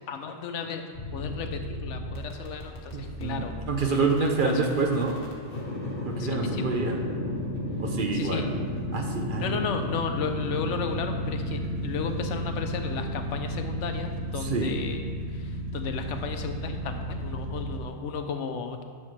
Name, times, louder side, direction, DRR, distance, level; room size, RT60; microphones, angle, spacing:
voice 1, 0.1-0.9 1.1-3.6 3.9-4.5 6.2-6.7 8.1-8.4 9.4-15.0 15.3-18.8, left 6 dB, 85° left, 6 dB, 1.0 m, -34 dB
sound 1, 0.9-17.8, equal, 65° left, 1.8 m, -33 dB
voice 2, 2.9-5.2 6.0-7.0 7.8-8.5 8.9-9.6 14.4-14.8, right 3 dB, 50° right, 2 dB, 0.9 m, -27 dB
10.5 x 6.5 x 3.3 m, 2.1 s
omnidirectional pair, 1.2 m